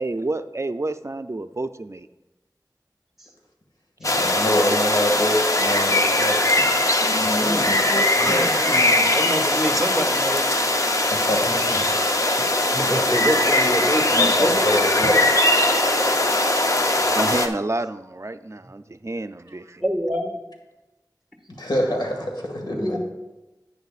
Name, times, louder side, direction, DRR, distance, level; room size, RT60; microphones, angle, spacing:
voice 1, 0.0-2.1 17.1-19.8, right 2 dB, 40° right, 10 dB, 0.4 m, -29 dB
voice 2, 4.0-8.5 11.1-11.5 13.8-15.2 21.6-23.0, equal, 75° left, 0 dB, 1.9 m, -26 dB
sound 1, 4.0-17.5, left 1 dB, 45° left, 0.7 m, -20 dB
voice 3, 7.2-7.8 8.2-10.5 11.4-11.8 12.7-14.8 16.9-17.2 19.8-20.3 22.7-23.0, equal, 5° right, 3 dB, 1.6 m, -27 dB
10.5 x 9.4 x 2.4 m, 1.0 s
wide cardioid pair, 45°, 7 cm